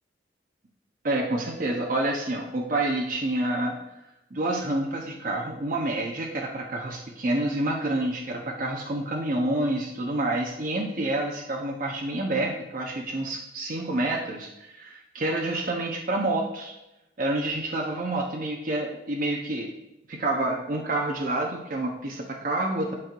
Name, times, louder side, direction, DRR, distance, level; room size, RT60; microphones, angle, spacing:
voice 1, 1.0-3.8 4.3-16.7 17.2-19.7 20.1-23.0, right 1 dB, 45° right, 0 dB, 0.8 m, -28 dB
11.0 x 4.5 x 2.5 m, 0.93 s
head